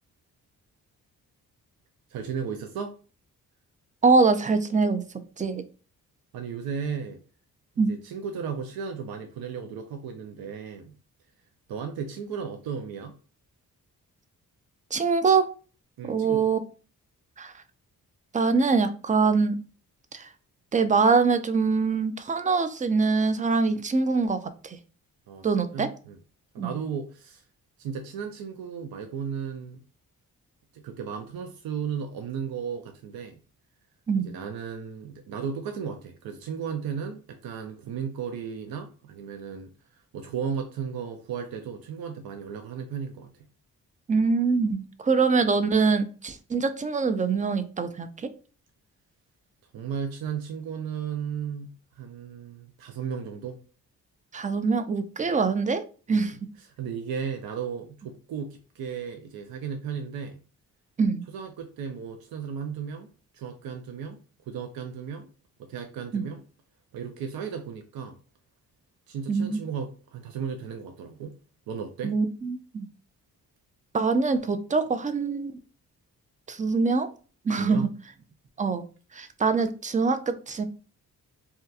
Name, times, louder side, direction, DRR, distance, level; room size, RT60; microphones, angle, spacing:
voice 1, 2.1-3.0 6.3-7.2 7.9-10.9 11.7-13.1 16.0-16.5 25.3-25.5 25.7-26.2 26.5-27.4 27.8-29.8 30.7-33.4 34.2-43.3 49.7-53.6 56.1-56.3 56.8-60.4 61.3-63.1 63.3-64.2 64.5-65.3 65.6-66.4 66.9-68.2 69.1-71.3 71.7-72.1 77.5-77.9, right 7 dB, 75° right, 5 dB, 0.5 m, -35 dB
voice 2, 4.0-5.0 5.4-5.6 7.8-7.9 14.9-15.5 16.1-16.6 17.4-17.6 18.3-19.6 20.1-20.3 20.7-24.8 25.4-25.9 26.6-26.7 34.1-34.3 44.1-48.3 54.3-55.8 56.1-56.4 61.0-61.2 66.1-66.3 69.3-69.6 72.0-72.9 73.9-75.5 76.5-77.1 77.4-77.9 78.6-78.8 79.1-80.6, right 4 dB, 20° right, 10 dB, 0.4 m, -24 dB
2.7 x 2.3 x 2.3 m, 0.36 s
supercardioid pair, 55°, 37 cm